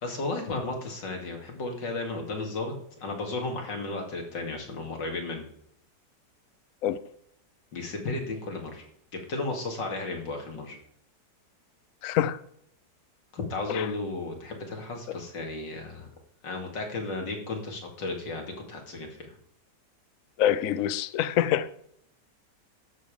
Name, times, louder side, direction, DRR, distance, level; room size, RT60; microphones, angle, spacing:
voice 1, 0.0-2.7 3.0-5.5 7.7-8.8 9.3-10.8 13.3-16.1 16.4-19.3, left 3 dB, 85° left, 3.0 m, -34 dB
voice 2, 12.0-12.4 20.4-21.7, left 11 dB, 65° left, 0.9 m, -25 dB
12.5 x 7.4 x 5.0 m
omnidirectional pair, 1.9 m